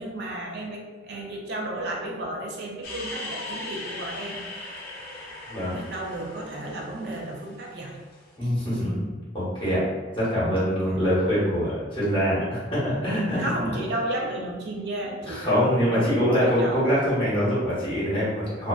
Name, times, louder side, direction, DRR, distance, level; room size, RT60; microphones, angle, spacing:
voice 1, 0.0-4.4 5.7-8.0 8.4-9.1 9.6-9.9 10.6-11.0 13.4-16.8, right 1 dB, 65° right, -1 dB, 0.4 m, -33 dB
sound 1, 2.8-8.2, left 2 dB, 55° left, 0.5 m, -39 dB
voice 2, 8.4-9.8 10.1-13.5 15.3-18.7, equal, 30° left, -9 dB, 1.0 m, -24 dB
2.4 x 2.2 x 2.2 m, 1.3 s
head